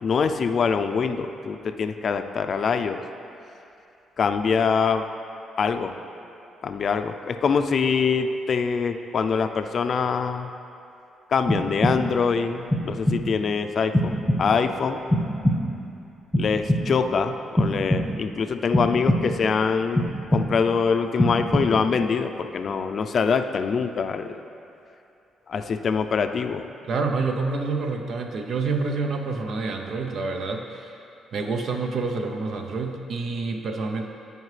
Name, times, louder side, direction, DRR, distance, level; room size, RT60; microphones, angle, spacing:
voice 1, 0.0-3.0 4.2-5.0 5.6-5.9 6.6-10.5 11.3-15.0 16.4-24.3 25.5-26.7, left 5 dB, 50° left, 7 dB, 0.4 m, -24 dB
sound 1, 11.5-12.3 12.7-13.4 13.9-14.7 15.1-15.9 16.3-17.1 17.6-18.4 18.7-19.5 20.0-20.8 21.2-22.0, equal, ahead, 1.0 m, -24 dB
voice 2, 26.9-31.0 31.3-34.0, right 4 dB, 60° right, 4 dB, 0.6 m, -28 dB
14.0 x 4.8 x 3.3 m, 2.7 s
cardioid pair, 90°, 0 cm